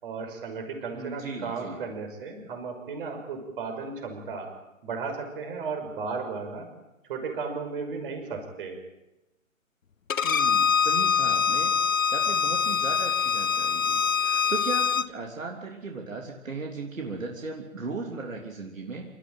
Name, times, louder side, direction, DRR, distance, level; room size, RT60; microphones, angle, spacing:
voice 1, 0.0-4.5 4.8-6.7 7.1-8.7, right 4 dB, 40° right, 4 dB, 5.9 m, -34 dB
voice 2, 0.9-1.9 10.2-11.7 12.1-19.0, right 3 dB, 70° right, 1 dB, 3.4 m, -36 dB
Bowed string instrument, 10.1-15.1, left 6 dB, 70° left, 1.0 m, -24 dB
27.5 x 14.0 x 9.0 m, 0.97 s
figure-of-eight pair, 140°, 41 cm